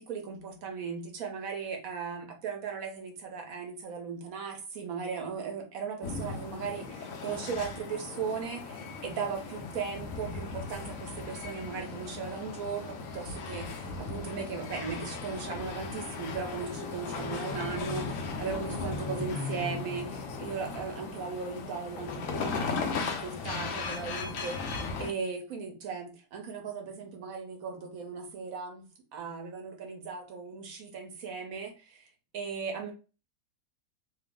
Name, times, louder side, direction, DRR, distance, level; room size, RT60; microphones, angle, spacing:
voice 1, 0.0-28.9 29.1-32.1 32.3-32.9, right 5 dB, 70° right, 2 dB, 1.3 m, -37 dB
sound 1, 6.0-25.1, left 4 dB, 70° left, 0.9 m, -37 dB
3.1 x 2.0 x 3.4 m, 0.32 s
omnidirectional pair, 1.6 m